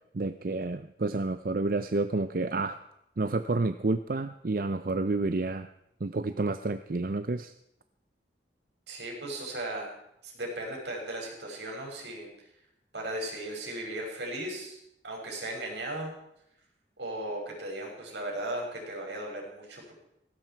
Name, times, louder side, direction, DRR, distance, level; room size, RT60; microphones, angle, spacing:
voice 1, 0.1-2.8 3.2-5.7 6.0-7.5, right 3 dB, 50° right, 10 dB, 0.6 m, -29 dB
voice 2, 8.9-9.9 10.2-12.3 12.9-14.8 15.0-16.1 17.0-19.9, right 1 dB, 80° right, 0 dB, 6.2 m, -36 dB
18.5 x 16.5 x 4.6 m, 0.81 s
head